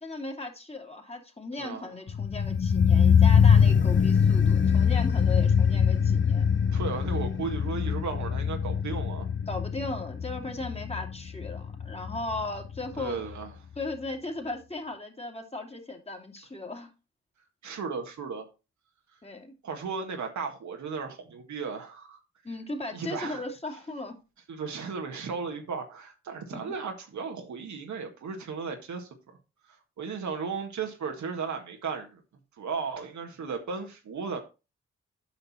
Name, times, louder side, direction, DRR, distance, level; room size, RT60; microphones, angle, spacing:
voice 1, 0.0-6.5 9.5-13.2 13.8-16.9 19.2-19.6 22.4-24.2 26.5-26.7, left 2 dB, 20° left, 2.4 m, -37 dB
voice 2, 1.6-1.9 6.7-9.3 13.0-13.5 17.6-18.4 19.6-22.2 22.9-23.4 24.5-29.1 30.0-32.2 32.6-34.4, right 5 dB, 75° right, 1.7 m, -35 dB
sound 1, 2.1-13.1 13.3-13.4, left 7 dB, 40° left, 0.8 m, -23 dB
9.0 x 5.5 x 4.2 m
supercardioid pair, 45°, 30 cm